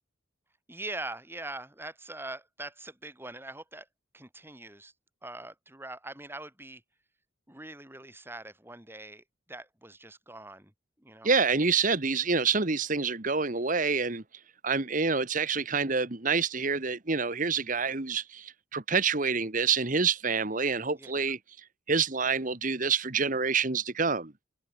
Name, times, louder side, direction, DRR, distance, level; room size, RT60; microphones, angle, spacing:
voice 1, 0.7-3.9 4.1-4.9 5.2-6.8 7.5-10.7 11.0-11.3 20.9-21.1, right 2 dB, 10° right, 5.4 m, -42 dB
voice 2, 11.2-14.2 14.6-21.4 21.9-24.3, right 5 dB, 40° right, 1.4 m, -27 dB
head